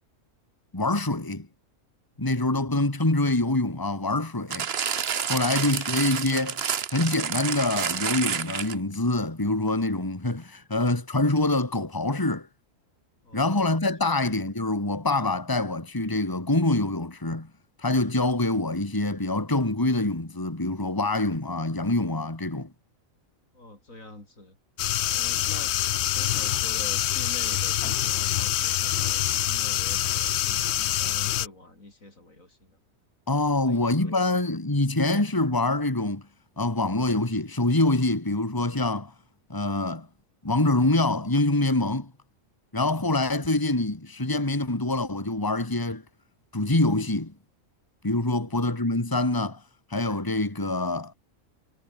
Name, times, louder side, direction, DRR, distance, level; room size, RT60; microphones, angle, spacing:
voice 1, 0.7-1.5 2.2-4.7 5.3-6.6 6.9-12.5 13.3-17.5 17.8-22.7 33.3-36.2 36.6-39.1 39.5-40.1 40.4-42.1 42.7-46.0 46.5-47.3 48.0-49.6 49.9-51.1, left 2 dB, 15° left, 2.3 m, -25 dB
voice 2, 2.1-2.5 13.2-14.2 23.5-24.6 25.1-32.8 33.5-34.4 48.3-48.6, left 2 dB, 85° left, 6.6 m, -46 dB
sound 1, 4.5-8.9 9.7-9.8, right 7 dB, 50° right, 1.2 m, -29 dB
sound 2, 24.8-31.5, left 13 dB, 65° left, 0.8 m, -26 dB
omnidirectional pair, 1.4 m